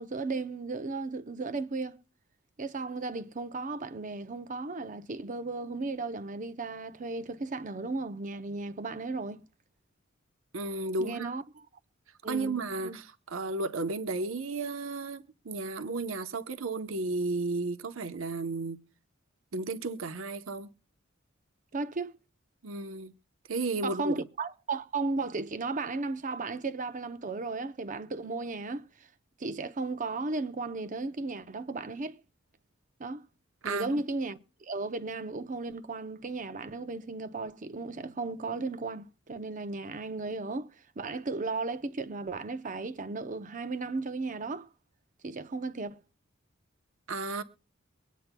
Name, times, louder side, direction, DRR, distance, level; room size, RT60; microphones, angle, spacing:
voice 1, 0.0-2.0 2.6-9.4 11.0-11.7 12.2-13.0 21.7-22.1 23.8-28.8 29.4-32.2 33.0-33.2 33.6-40.7 41.0-44.7 45.2-46.0, right 3 dB, 40° right, 0.7 m, -35 dB
voice 2, 10.5-11.3 12.3-18.8 19.5-20.7 22.6-23.1 23.5-24.2 33.6-33.9 47.1-47.4, right 3 dB, 90° right, 0.9 m, -33 dB
23.5 x 9.2 x 2.2 m
head